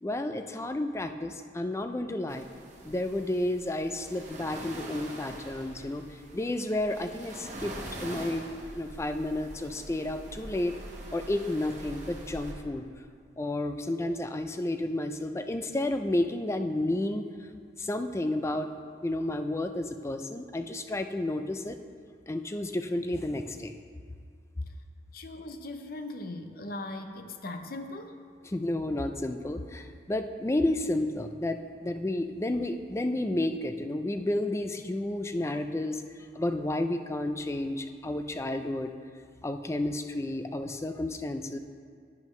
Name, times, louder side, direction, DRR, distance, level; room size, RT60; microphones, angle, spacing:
voice 1, 0.0-2.5 2.8-6.0 6.3-7.7 8.0-10.8 11.1-12.9 13.4-17.3 17.8-18.7 19.0-21.8 22.3-23.7 28.5-36.0 36.3-38.9 39.4-41.6, left 1 dB, 15° left, 8 dB, 0.4 m, -31 dB
sound 1, 2.3-12.5, right 1 dB, 40° right, 1.3 m, -44 dB
voice 2, 25.1-28.1, left 2 dB, 55° left, 7 dB, 0.6 m, -39 dB
10.5 x 9.5 x 3.1 m, 2.1 s
head